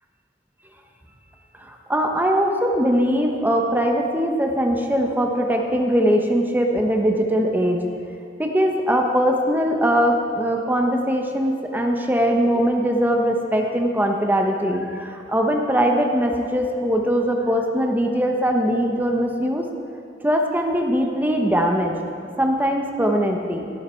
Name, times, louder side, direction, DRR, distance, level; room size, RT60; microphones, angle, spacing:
voice 1, 1.6-7.8 8.4-19.7 20.2-21.9 22.4-23.6, equal, 10° right, 2 dB, 1.1 m, -21 dB
16.5 x 11.5 x 4.6 m, 2.6 s
head